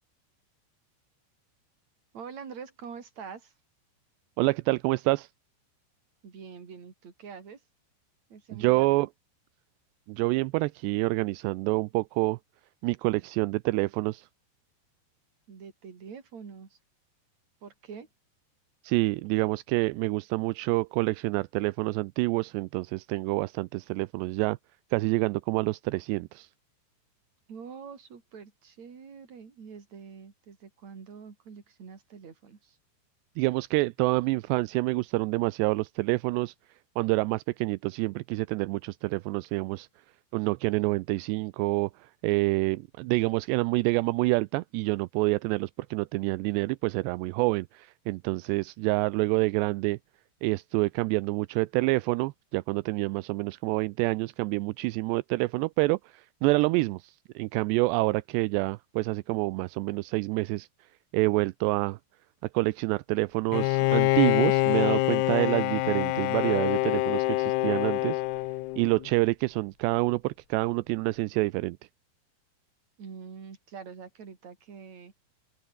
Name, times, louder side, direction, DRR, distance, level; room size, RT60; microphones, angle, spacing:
voice 1, 2.1-3.5 6.2-7.6 8.3-9.1 15.5-16.8 17.6-18.1 27.5-32.8 73.0-75.1, right 6 dB, 40° right, 4.7 m, -45 dB
voice 2, 4.4-5.3 8.5-9.1 10.1-12.4 12.8-14.3 18.8-24.6 24.9-26.5 33.4-36.5 37.0-39.9 40.3-41.9 42.2-50.0 50.4-60.7 61.1-62.0 62.5-68.2 68.8-71.8, right 22 dB, 85° right, 2.8 m, -27 dB
Bowed string instrument, 63.5-69.1, left 19 dB, 80° left, 2.7 m, -26 dB
open air
omnidirectional pair, 4.9 m